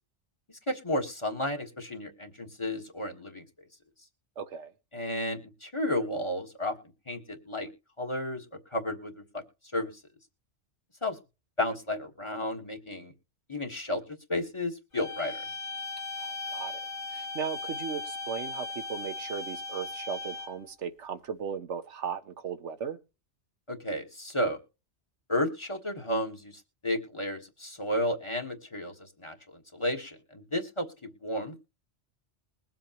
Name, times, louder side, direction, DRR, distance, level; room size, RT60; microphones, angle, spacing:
voice 1, 0.7-3.4 4.9-6.7 7.1-7.7 8.0-8.4 8.7-9.4 9.7-9.9 11.0-11.2 11.6-13.1 13.5-14.0 14.3-15.4 23.7-24.6 25.3-26.5 26.8-28.9 29.2-31.5, left 1 dB, 25° left, 1.6 m, -32 dB
voice 2, 4.4-4.7 16.2-16.8 17.1-23.0, right 7 dB, 80° right, 1.3 m, -37 dB
sound 1, 14.9-20.7, left 3 dB, 75° left, 2.2 m, -38 dB
21.5 x 7.6 x 3.0 m
omnidirectional pair, 1.2 m